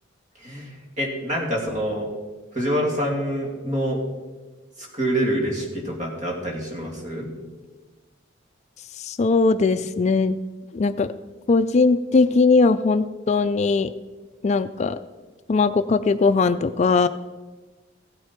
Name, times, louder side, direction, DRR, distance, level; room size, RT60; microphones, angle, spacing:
voice 1, 0.4-2.1 2.5-4.0 4.8-7.3, equal, 40° right, -1 dB, 2.6 m, -26 dB
voice 2, 9.0-10.4 10.7-11.1 11.5-13.9 14.4-15.0 15.5-17.1, left 4 dB, 35° left, 11 dB, 0.3 m, -19 dB
15.0 x 9.8 x 4.4 m, 1.3 s
head